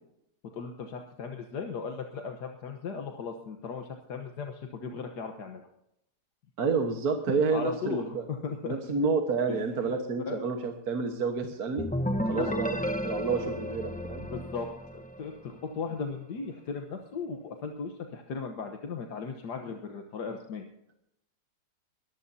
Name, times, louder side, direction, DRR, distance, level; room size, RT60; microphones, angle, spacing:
voice 1, 0.5-5.7 7.5-8.9 9.5-9.6 9.8-9.9 10.3-10.4 12.3-12.5 14.3-14.7 14.9-20.7, left 5 dB, 75° left, 4 dB, 1.7 m, -37 dB
voice 2, 6.6-8.2 8.6-11.8 12.3-12.7 13.0-14.3, right 4 dB, 65° right, 4 dB, 1.8 m, -29 dB
sound 1, 11.8-15.5, equal, 5° left, 0.7 m, -32 dB
22.0 x 14.5 x 2.8 m, 0.79 s
omnidirectional pair, 1.8 m